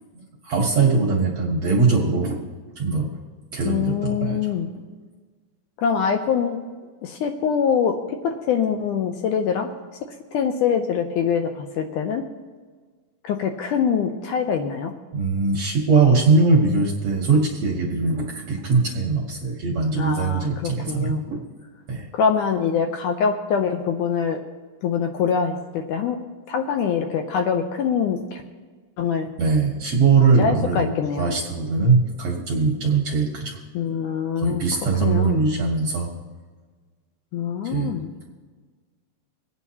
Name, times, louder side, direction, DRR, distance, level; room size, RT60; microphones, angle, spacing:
voice 1, 0.1-2.4 2.8-3.1 3.5-4.5 15.1-21.4 21.9-22.1 29.4-33.6 34.4-36.1 37.6-37.9, right 4 dB, 65° right, 0 dB, 1.8 m, -21 dB
voice 2, 3.6-4.7 5.8-6.6 7.0-9.7 10.3-12.3 13.2-14.9 20.0-21.2 22.1-24.4 24.8-26.2 26.5-28.4 29.0-29.3 30.4-31.3 33.8-34.7 35.0-35.4 37.3-38.1, left 7 dB, 80° left, 4 dB, 1.9 m, -24 dB
26.5 x 9.0 x 2.8 m, 1.5 s
omnidirectional pair, 4.0 m